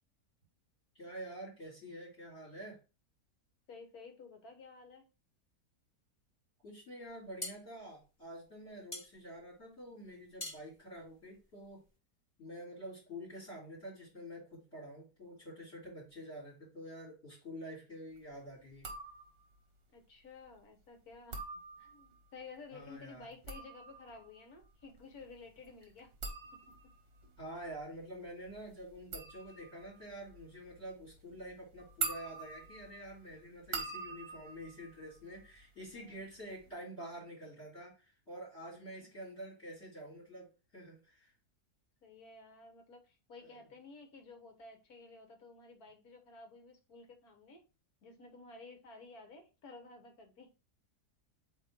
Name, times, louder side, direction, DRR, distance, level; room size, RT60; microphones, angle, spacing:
voice 1, 1.0-2.8 6.6-11.8 12.4-18.9 22.7-23.3 27.4-41.3 43.4-43.6, equal, 40° left, -6 dB, 3.7 m, -48 dB
voice 2, 3.7-5.1 19.9-21.4 21.8-26.1 26.7-26.9 35.9-36.3 42.0-47.6 48.0-50.5, left 3 dB, 65° left, 5 dB, 1.7 m, -53 dB
sound 1, 7.0-12.0, left 2 dB, 25° left, 1.6 m, -48 dB
sound 2, 18.7-19.6 21.1-22.2 23.2-35.9 36.2-36.7, right 4 dB, 40° right, 1.1 m, -45 dB
8.1 x 3.1 x 3.6 m, 0.31 s
omnidirectional pair, 1.7 m